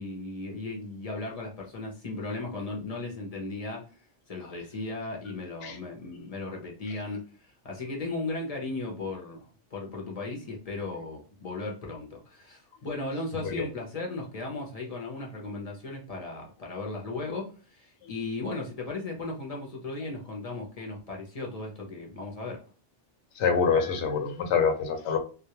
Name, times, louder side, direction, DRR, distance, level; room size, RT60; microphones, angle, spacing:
voice 1, 0.0-3.8 4.3-22.6, left 3 dB, 40° left, -1 dB, 0.7 m, -36 dB
voice 2, 23.4-25.2, left 6 dB, 80° left, 5 dB, 0.9 m, -25 dB
2.2 x 2.2 x 2.9 m, 0.35 s
omnidirectional pair, 1.2 m